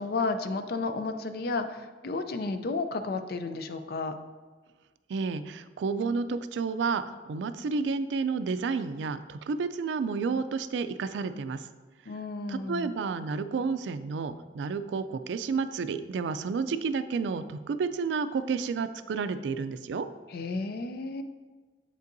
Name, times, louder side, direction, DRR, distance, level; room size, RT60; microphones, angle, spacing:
voice 1, 0.0-4.2 12.1-12.9 20.3-21.2, left 3 dB, 60° left, 9 dB, 0.4 m, -32 dB
voice 2, 5.1-11.7 12.5-20.1, right 5 dB, 90° right, 13 dB, 0.3 m, -31 dB
7.5 x 5.3 x 2.6 m, 1.3 s
head